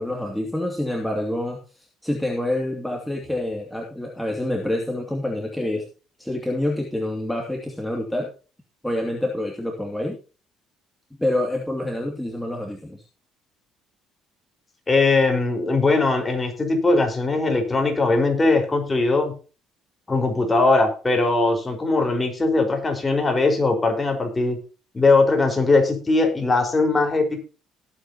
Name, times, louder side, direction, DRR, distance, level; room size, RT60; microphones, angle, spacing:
voice 1, 0.0-5.9 6.2-8.3 8.8-10.2 11.2-13.0, left 1 dB, 5° left, 0 dB, 2.6 m, -27 dB
voice 2, 14.9-19.3 20.1-24.6 24.9-27.4, left 3 dB, 20° left, 3 dB, 4.8 m, -20 dB
18.5 x 8.7 x 2.9 m, 0.34 s
cardioid pair, 100°, 0 cm